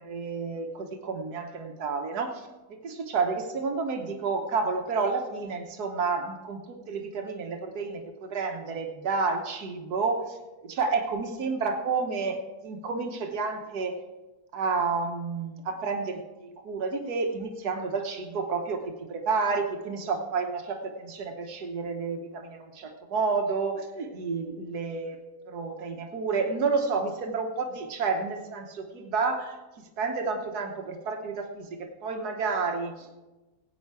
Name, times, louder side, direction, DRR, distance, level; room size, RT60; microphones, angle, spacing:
voice 1, 0.0-14.0 14.5-25.2 25.5-33.2, right 4 dB, 90° right, 4 dB, 1.6 m, -30 dB
17.0 x 8.5 x 4.7 m, 1.1 s
omnidirectional pair, 1.6 m